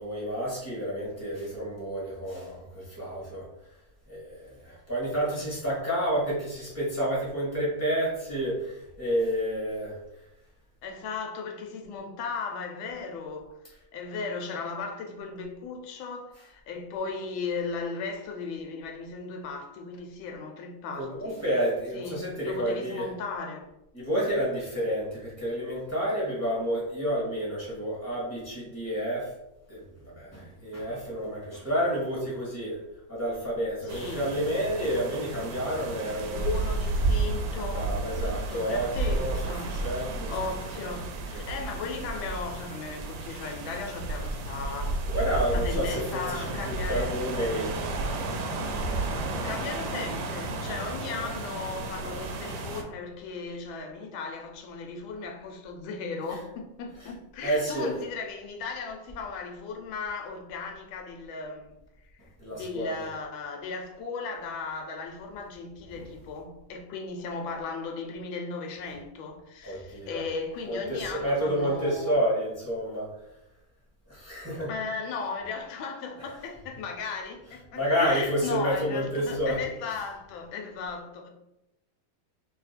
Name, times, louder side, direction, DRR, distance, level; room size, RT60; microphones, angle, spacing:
voice 1, 0.0-3.5 4.1-10.0 21.0-23.1 23.9-29.3 29.7-32.8 33.1-36.5 37.7-40.3 40.8-40.9 41.3-41.4 45.1-46.0 46.3-47.7 51.1-51.3 57.4-57.9 62.4-63.0 69.6-70.2 70.7-73.1 74.1-74.7 76.2-76.3 77.7-79.6, equal, 10° right, 1.0 m, -30 dB
voice 2, 10.8-13.6 13.9-21.4 21.9-23.6 33.8-34.3 36.3-39.7 40.3-45.0 45.5-47.1 48.8-61.7 62.1-62.2 62.5-72.2 74.7-81.3, left 4 dB, 80° left, 1.3 m, -36 dB
sound 1, 33.9-52.8, right 2 dB, 75° right, 1.3 m, -32 dB
3.0 x 2.8 x 4.1 m
omnidirectional pair, 2.2 m